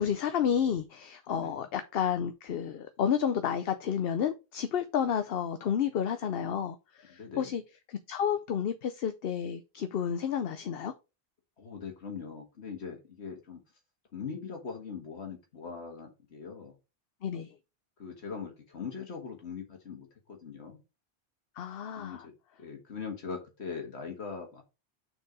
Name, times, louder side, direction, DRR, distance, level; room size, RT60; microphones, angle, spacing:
voice 1, 0.0-7.6 7.9-10.9 17.2-17.5 21.6-22.3, left 8 dB, 70° left, 0.9 m, -31 dB
voice 2, 1.3-1.7 7.2-7.5 11.6-13.6 14.1-16.7 18.0-20.8 22.0-22.3 22.6-24.6, left 5 dB, 85° left, 1.8 m, -41 dB
6.6 x 4.6 x 4.9 m
omnidirectional pair, 1.1 m